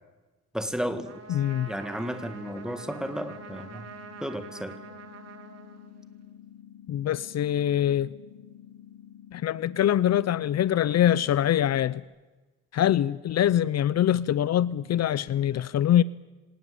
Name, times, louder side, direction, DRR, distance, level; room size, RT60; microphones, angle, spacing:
voice 1, 0.5-1.2 1.7-3.9 4.2-4.8, equal, ahead, 2.3 m, -33 dB
Trumpet, 1.0-6.3, right 6 dB, 55° right, 3.2 m, -45 dB
voice 2, 1.3-1.7 6.9-8.1 9.3-12.0 12.7-16.0, left 11 dB, 60° left, 0.7 m, -24 dB
sound 1, 2.0-12.0, left 10 dB, 90° left, 1.3 m, -49 dB
26.0 x 18.5 x 8.7 m
cardioid pair, 90°, 30 cm